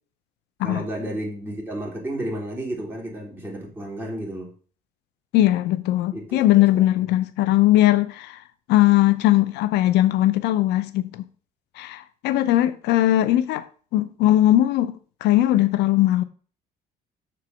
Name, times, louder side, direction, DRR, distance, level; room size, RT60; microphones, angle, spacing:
voice 1, 0.6-4.5 6.1-6.8, right 1 dB, 10° right, 3.5 m, -32 dB
voice 2, 5.3-8.4 8.7-11.2 11.8-13.7 13.9-14.9 15.2-16.2, left 14 dB, 85° left, 0.6 m, -19 dB
6.9 x 4.7 x 6.3 m
cardioid pair, 110°, 17 cm